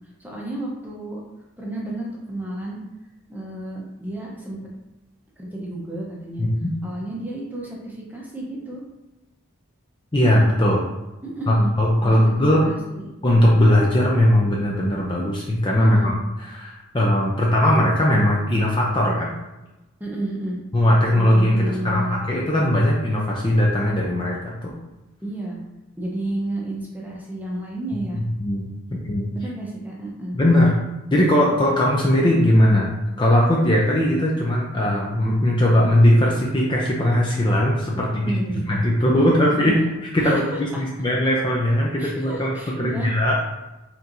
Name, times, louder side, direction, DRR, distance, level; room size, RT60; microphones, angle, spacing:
voice 1, 0.2-1.2 1.6-2.8 3.3-4.6 5.4-6.4 6.8-8.8 11.2-11.7 12.0-12.3 12.6-13.0 15.8-16.1 20.0-20.6 21.1-22.2 25.2-25.6 26.0-28.2 29.3-30.4 37.9-38.7 39.5-39.9 40.2-40.6 42.0-43.1, right 1 dB, 10° right, -3 dB, 0.7 m, -31 dB
voice 2, 6.4-6.7 10.1-10.9 11.5-12.7 13.2-16.1 16.5-19.3 20.7-24.7 28.1-29.3 30.3-30.7 31.1-32.9 33.2-38.3 38.7-39.8 40.1-42.5 42.8-43.4, left 1 dB, 20° left, -3 dB, 0.4 m, -19 dB
4.4 x 3.7 x 2.6 m, 1.0 s
head